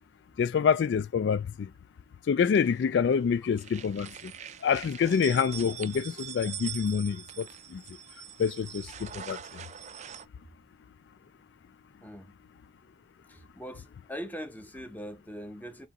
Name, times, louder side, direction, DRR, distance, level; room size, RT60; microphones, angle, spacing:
voice 1, 0.4-1.7 2.3-4.3 4.6-7.8 8.4-9.4, left 6 dB, 65° left, 0.3 m, -27 dB
sound 1, 2.5-3.2 3.5-10.3, right 9 dB, 40° right, 0.4 m, -43 dB
voice 2, 12.0-12.3 13.3-15.9, equal, 10° left, 0.9 m, -41 dB
4.0 x 2.8 x 3.6 m
head